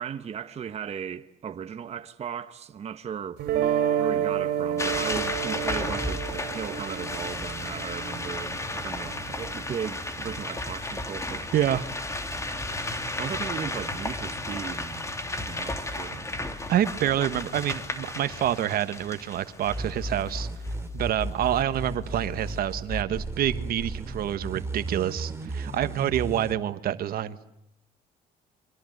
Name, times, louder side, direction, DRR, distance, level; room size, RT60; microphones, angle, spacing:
voice 1, 0.0-3.4 4.0-11.5 13.2-15.1 15.3-16.3 24.5-24.7 25.4-25.7, right 8 dB, 40° right, 1.1 m, -36 dB
sound 1, 3.4-9.5, right 9 dB, 80° right, 3.2 m, -30 dB
sound 2, 4.8-20.7, left 2 dB, 15° left, 2.9 m, -33 dB
voice 2, 11.5-11.9 16.7-20.5 20.9-27.4, right 11 dB, 65° right, 1.4 m, -27 dB
sound 3, 19.7-26.5, right 2 dB, 15° right, 3.5 m, -34 dB
30.0 x 24.5 x 8.0 m
cardioid pair, 110°, 17 cm